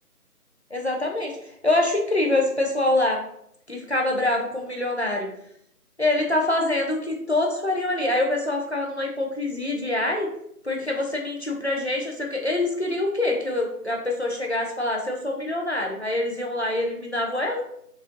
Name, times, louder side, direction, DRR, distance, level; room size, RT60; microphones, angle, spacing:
voice 1, 0.7-3.2 3.7-5.3 6.0-10.3 10.6-17.6, left 2 dB, 45° left, 0 dB, 0.5 m, -25 dB
4.6 x 2.5 x 2.7 m, 0.71 s
figure-of-eight pair, 175°, 46 cm